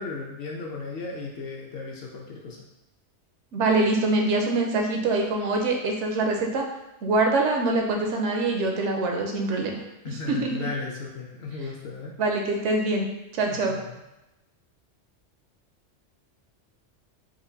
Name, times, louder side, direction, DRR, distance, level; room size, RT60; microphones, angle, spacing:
voice 1, 0.0-2.6 10.0-12.1 13.5-13.9, left 4 dB, 60° left, -1 dB, 0.7 m, -35 dB
voice 2, 3.5-6.7 7.0-9.8 10.3-10.5 12.2-13.1 13.3-13.8, right 2 dB, 80° right, 1 dB, 0.9 m, -24 dB
4.3 x 2.5 x 2.7 m, 0.95 s
omnidirectional pair, 1.2 m